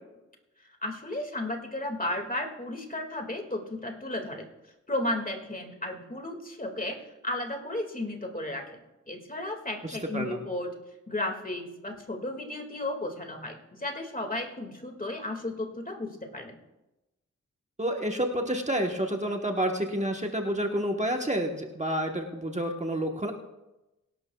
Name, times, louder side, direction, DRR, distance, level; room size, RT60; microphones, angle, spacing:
voice 1, 0.8-4.5 4.9-10.7 11.1-16.6, left 1 dB, 30° left, 3 dB, 2.1 m, -34 dB
voice 2, 9.8-10.4 17.8-23.3, right 1 dB, 25° right, 2 dB, 1.2 m, -29 dB
24.0 x 11.5 x 2.3 m, 1.0 s
wide cardioid pair, 75°, 30 cm